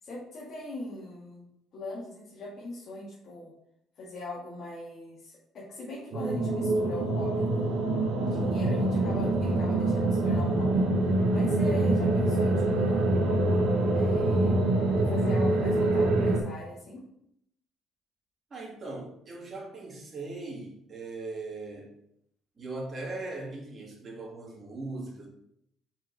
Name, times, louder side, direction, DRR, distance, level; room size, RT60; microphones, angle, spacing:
voice 1, 0.0-1.4 1.7-3.6 4.0-7.9 8.3-13.3 13.9-14.6 15.0-17.0, left 2 dB, 50° left, -6 dB, 1.9 m, -40 dB
sound 1, 6.1-16.4, right 2 dB, 70° right, 1.1 m, -25 dB
voice 2, 18.5-21.9 22.6-25.3, right 2 dB, 30° right, -3 dB, 2.1 m, -39 dB
5.0 x 4.4 x 4.7 m, 0.76 s
cardioid pair, 125°, 0 cm